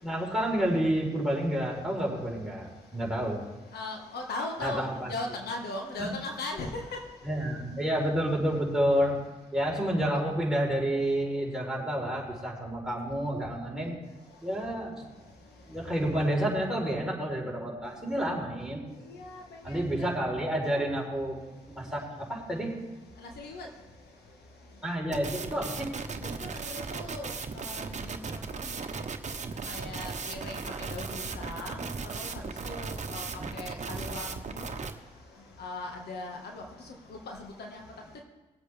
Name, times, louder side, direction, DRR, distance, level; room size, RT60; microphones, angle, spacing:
voice 1, 0.0-3.4 4.6-5.1 7.2-9.2 9.5-14.0 14.4-15.0 15.7-18.8 19.6-21.4 21.8-22.7 24.8-25.9 33.3-33.5, right 1 dB, 5° right, -2 dB, 4.1 m, -29 dB
voice 2, 3.7-6.8 19.1-19.4 19.7-19.8 23.2-23.7 26.2-26.4 26.6-28.2 28.5-28.7 29.7-30.5 30.9-32.3 32.6-33.2 33.5-34.8 35.6-36.6 37.3-37.8, left 2 dB, 75° left, 2 dB, 1.7 m, -38 dB
sound 1, 25.1-34.9, right 5 dB, 45° right, 1.1 m, -37 dB
20.0 x 8.0 x 3.5 m, 1.1 s
supercardioid pair, 50°, 17 cm